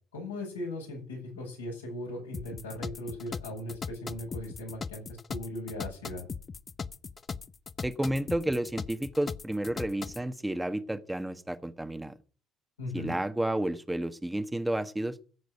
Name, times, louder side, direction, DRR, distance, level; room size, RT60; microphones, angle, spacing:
voice 1, 0.1-5.0 5.3-6.2 12.8-13.2, left 1 dB, 90° left, -1 dB, 7.1 m, -38 dB
sound 1, 2.3-10.2, left 5 dB, 35° left, 0.8 m, -39 dB
voice 2, 7.8-12.1 12.9-15.2, right 1 dB, 10° right, 10 dB, 1.4 m, -31 dB
15.5 x 8.2 x 7.9 m, 0.41 s
hypercardioid pair, 55°, 0 cm